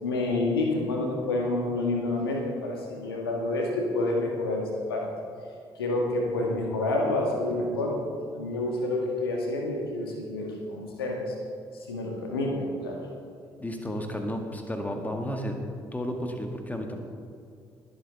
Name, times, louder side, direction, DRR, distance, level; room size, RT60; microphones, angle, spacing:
voice 1, 0.0-5.1 5.8-8.0 8.3-11.2 11.9-13.0, left 2 dB, 80° left, 1 dB, 1.6 m, -28 dB
voice 2, 13.6-15.6 15.9-17.0, equal, 15° left, 3 dB, 1.9 m, -32 dB
21.0 x 8.0 x 3.5 m, 2.4 s
figure-of-eight pair, 45°, 12 cm